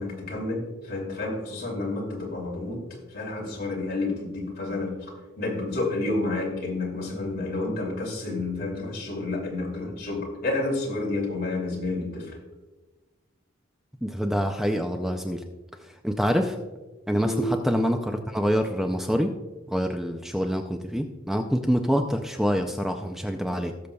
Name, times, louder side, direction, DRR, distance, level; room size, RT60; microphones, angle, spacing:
voice 1, 0.0-2.8 3.1-12.4 17.1-17.5, left 2 dB, 50° left, -2 dB, 2.6 m, -30 dB
voice 2, 14.0-15.4 15.8-16.6 17.1-19.3 19.7-23.7, equal, ahead, 4 dB, 0.4 m, -26 dB
18.5 x 6.6 x 2.3 m, 1.2 s
head